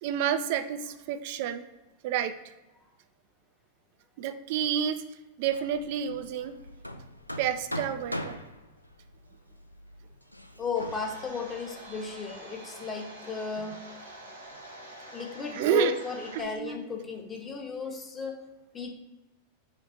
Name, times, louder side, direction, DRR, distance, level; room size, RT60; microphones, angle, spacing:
voice 1, 0.0-1.6 2.0-2.3 4.2-5.0 5.4-6.6 7.4-8.4 15.6-15.9 16.3-16.8, right 9 dB, 50° right, 9 dB, 0.4 m, -29 dB
Hammer, 5.4-12.3, left 1 dB, 90° left, 0.3 m, -42 dB
voice 2, 10.6-14.1 15.1-18.4 18.7-18.9, left 5 dB, 20° left, 2 dB, 0.9 m, -35 dB
Domestic sounds home sounds, 10.7-16.4, right 1 dB, 75° right, 1.0 m, -46 dB
5.1 x 2.4 x 4.1 m, 1.1 s
figure-of-eight pair, 90°, 0 cm